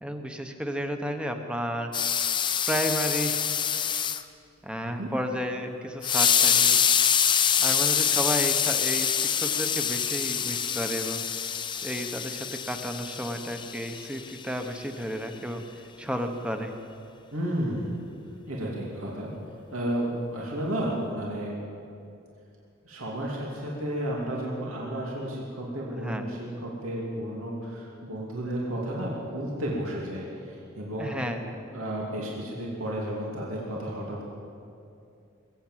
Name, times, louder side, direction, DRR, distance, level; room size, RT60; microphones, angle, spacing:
voice 1, 0.0-1.9 2.7-3.4 4.6-6.9 7.6-11.2 11.8-15.6 16.0-16.7 25.9-26.3 31.0-31.6, equal, 5° right, 5 dB, 1.0 m, -32 dB
sound 1, 1.9-4.2 6.0-14.4, left 8 dB, 25° left, 0.5 m, -25 dB
voice 2, 17.3-17.9 18.5-19.3 19.7-21.6 22.8-31.2 31.7-34.2, right 1 dB, 90° right, -4 dB, 2.7 m, -32 dB
21.0 x 8.9 x 7.5 m, 2.6 s
head